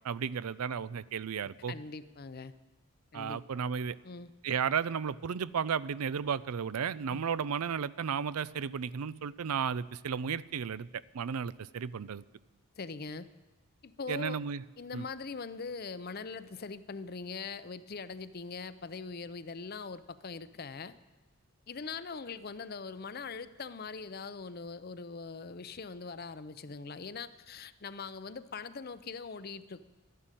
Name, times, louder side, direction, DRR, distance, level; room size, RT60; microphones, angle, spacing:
voice 1, 0.0-1.7 3.1-4.0 4.4-10.9 11.1-12.2 14.1-14.6 14.9-15.0, right 7 dB, 85° right, 18 dB, 0.5 m, -33 dB
voice 2, 1.7-2.5 3.1-3.4 4.0-4.3 7.1-7.2 12.8-13.3 13.8-14.4 14.8-20.9 21.7-29.8, left 4 dB, 45° left, 14 dB, 0.6 m, -42 dB
12.5 x 11.5 x 9.0 m, 1.2 s
head